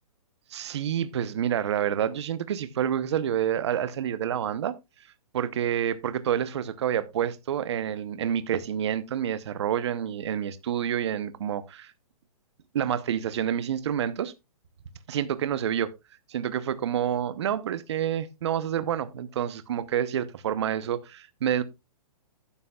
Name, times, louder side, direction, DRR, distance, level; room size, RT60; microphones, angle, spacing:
voice 1, 0.5-4.7 5.3-11.9 12.7-14.3 15.1-15.9 16.3-21.6, right 9 dB, 50° right, 0.9 m, -28 dB
12.0 x 9.9 x 2.3 m
hypercardioid pair, 170°, 19 cm